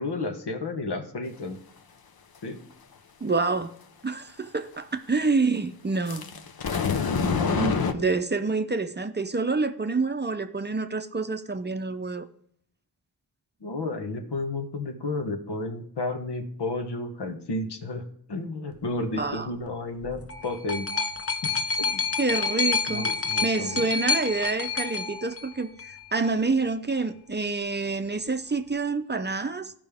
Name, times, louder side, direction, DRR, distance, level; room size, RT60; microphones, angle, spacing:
voice 1, 0.0-1.6 2.4-2.6 7.8-8.1 13.6-18.0 18.3-20.9 21.4-21.5 21.8-22.0 22.9-23.8, left 2 dB, 80° left, 1.2 m, -32 dB
voice 2, 3.2-3.7 4.0-6.3 7.2-12.3 19.2-19.5 22.2-23.1 23.4-29.7, right 3 dB, 25° right, 0.6 m, -27 dB
sound 1, 6.1-7.9, left 6 dB, 65° left, 0.8 m, -26 dB
sound 2, 20.0-26.0 26.9-27.0, left 4 dB, 35° left, 0.9 m, -28 dB
14.5 x 5.3 x 3.5 m
wide cardioid pair, 80°, 40 cm